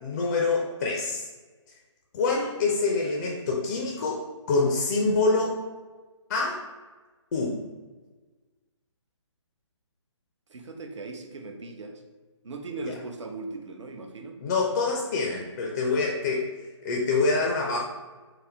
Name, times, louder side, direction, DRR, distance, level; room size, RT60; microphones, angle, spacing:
voice 1, 0.0-1.3 2.1-5.6 6.3-6.6 7.3-7.6 14.4-16.5 16.8-17.8, left 3 dB, 35° left, -1 dB, 0.5 m, -26 dB
voice 2, 10.5-12.0 12.4-14.4, right 3 dB, 70° right, 4 dB, 0.7 m, -38 dB
4.0 x 2.6 x 4.3 m, 1.3 s
figure-of-eight pair, 145°, 16 cm